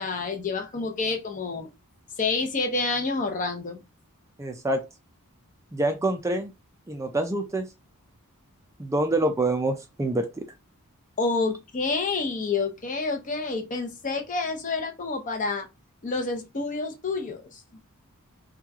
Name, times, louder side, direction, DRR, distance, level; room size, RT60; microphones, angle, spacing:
voice 1, 0.0-1.7 2.2-3.8 11.2-15.7 16.0-17.6, left 3 dB, 35° left, 0.6 m, -28 dB
voice 2, 4.4-4.8 5.7-6.5 6.9-7.7 8.8-10.5, right 2 dB, 15° right, 0.4 m, -26 dB
3.0 x 2.3 x 3.5 m
head